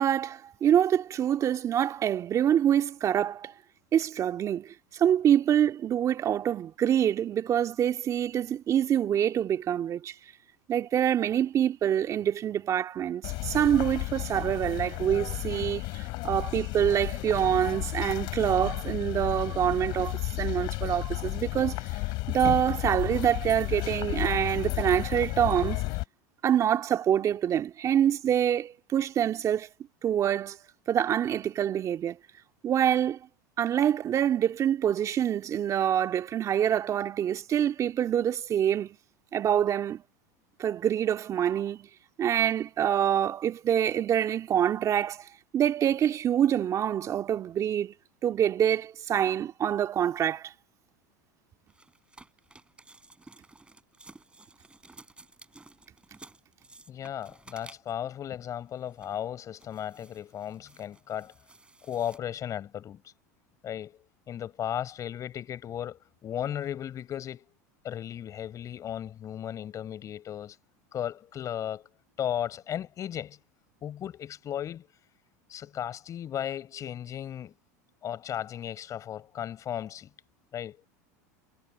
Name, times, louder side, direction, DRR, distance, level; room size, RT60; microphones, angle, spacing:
voice 1, 0.0-3.5 3.9-10.2 10.7-21.8 22.3-25.8 26.4-29.7 30.0-30.6 30.9-32.2 32.6-33.3 33.6-39.0 39.3-40.0 40.6-41.9 42.2-45.3 45.5-47.9 48.2-50.5, right 10 dB, 35° right, 2.1 m, -26 dB
sound 1, 13.2-26.0, left 23 dB, 60° left, 3.8 m, -33 dB
sound 2, 51.7-58.1 58.7-59.2 59.6-62.2, right 3 dB, 10° right, 7.5 m, -54 dB
voice 2, 56.9-61.3 61.8-63.0 63.6-67.4 67.8-70.6 70.9-71.9 72.2-73.4 73.8-74.9 75.5-77.5 78.0-80.1 80.5-80.9, left 10 dB, 35° left, 4.4 m, -35 dB
hypercardioid pair, 105°, 9 cm